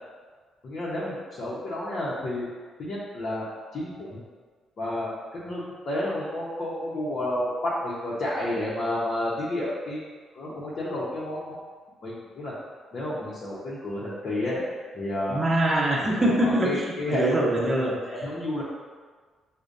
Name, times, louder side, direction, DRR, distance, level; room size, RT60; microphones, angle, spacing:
voice 1, 0.6-2.5 2.8-4.2 4.8-10.0 10.3-11.6 12.0-12.5 12.9-14.6 14.9-15.4 16.0-17.7 18.1-18.6, left 1 dB, 55° left, -8 dB, 0.7 m, -31 dB
voice 2, 15.3-18.2, right 1 dB, 25° right, -4 dB, 0.9 m, -24 dB
5.0 x 2.2 x 2.5 m, 1.5 s
cardioid pair, 90°, 0 cm